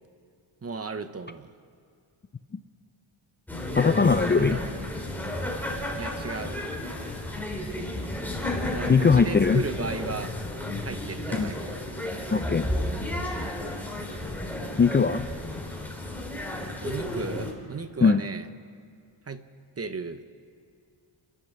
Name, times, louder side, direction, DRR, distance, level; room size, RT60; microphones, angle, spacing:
voice 1, 0.6-1.5 4.3-4.7 5.9-6.5 8.7-10.4 10.8-11.8 16.8-18.5 19.3-19.4 19.8-20.2, right 4 dB, 30° right, 11 dB, 0.9 m, -35 dB
sound 1, 3.5-17.5, left 1 dB, 5° left, 4.0 m, -32 dB
voice 2, 3.8-4.6 8.9-9.6 11.3-11.5 12.3-12.7 14.8-15.3 18.0-18.2, left 5 dB, 25° left, 9 dB, 0.4 m, -20 dB
29.5 x 12.5 x 7.4 m, 2.4 s
wide cardioid pair, 115°, 49 cm